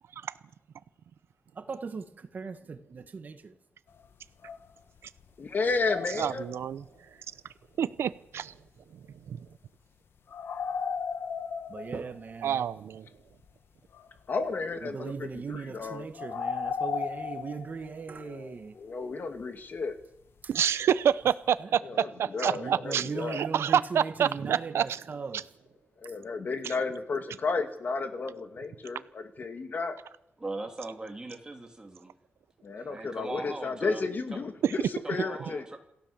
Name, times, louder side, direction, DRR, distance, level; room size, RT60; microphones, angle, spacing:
voice 1, 1.6-3.6 11.7-12.6 14.8-18.7 20.4-20.5 21.6-21.7 22.6-25.4 32.8-32.9, right 5 dB, 40° right, 1.7 m, -38 dB
sound 1, 3.9-4.1 4.4-5.3 5.7-6.7 10.3-12.3 13.1-13.2 13.4-13.5 13.9-14.2 15.1-15.5 16.1-18.1 20.4-20.5 21.2-21.3, left 6 dB, 65° left, 1.2 m, -35 dB
voice 2, 5.4-6.4 14.3-16.1 18.2-20.0 21.8-23.4 26.0-30.0 32.6-35.6, left 4 dB, 45° left, 2.3 m, -33 dB
voice 3, 6.2-6.8 7.8-8.5 9.3-9.4 12.4-13.1 20.5-25.0 25.3-25.4 26.6-26.7 34.6-34.7, right 9 dB, 85° right, 0.8 m, -28 dB
voice 4, 30.4-32.1 32.8-34.0 35.0-35.8, right 2 dB, 15° right, 3.2 m, -39 dB
27.5 x 16.0 x 7.3 m
wide cardioid pair, 145°, 4 cm